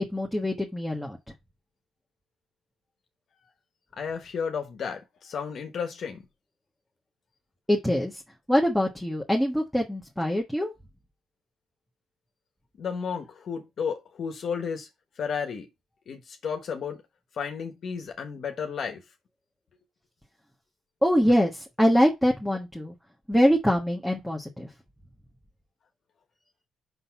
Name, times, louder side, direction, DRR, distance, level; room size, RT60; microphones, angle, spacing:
voice 1, 0.1-1.2 7.7-8.1 8.5-10.7 21.0-22.9 23.3-24.7, equal, ahead, 1.3 m, -24 dB
voice 2, 4.0-6.2 12.8-14.9 15.2-15.7 16.1-17.0 17.3-19.0, left 6 dB, 60° left, 1.3 m, -33 dB
5.7 x 3.9 x 5.8 m
cardioid pair, 90°, 0 cm